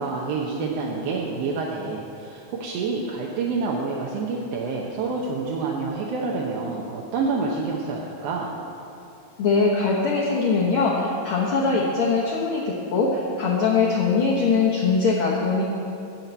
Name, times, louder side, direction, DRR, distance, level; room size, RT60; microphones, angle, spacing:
voice 1, 0.0-8.6, right 4 dB, 70° right, -2 dB, 1.8 m, -28 dB
voice 2, 9.4-15.6, left 4 dB, 60° left, -4 dB, 1.5 m, -22 dB
12.5 x 4.5 x 8.0 m, 2.8 s
omnidirectional pair, 3.4 m